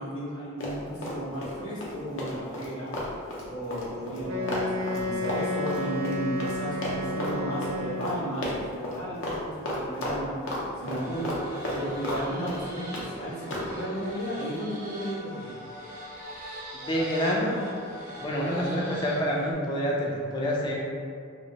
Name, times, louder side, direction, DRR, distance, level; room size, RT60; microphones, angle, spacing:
voice 1, 0.0-3.1 3.4-10.4 10.8-11.4 11.7-15.6, equal, 85° left, -9 dB, 1.2 m, -34 dB
Run, 0.6-1.5 1.8-6.6 6.8-7.4 7.6-7.8 8.0-8.2 8.4-9.0 9.2-9.4 9.7-10.6 10.9-12.2 12.5-13.1 13.5-13.7, left 1 dB, 60° left, 0.7 m, -33 dB
Wind instrument woodwind instrument, 4.2-8.4, left 1 dB, 80° right, 0.5 m, -32 dB
sound 1, 10.8-19.5, equal, 40° right, 0.7 m, -41 dB
voice 2, 16.7-17.7 18.2-20.8, equal, 20° left, -3 dB, 0.4 m, -27 dB
3.0 x 2.9 x 2.8 m, 2.2 s
head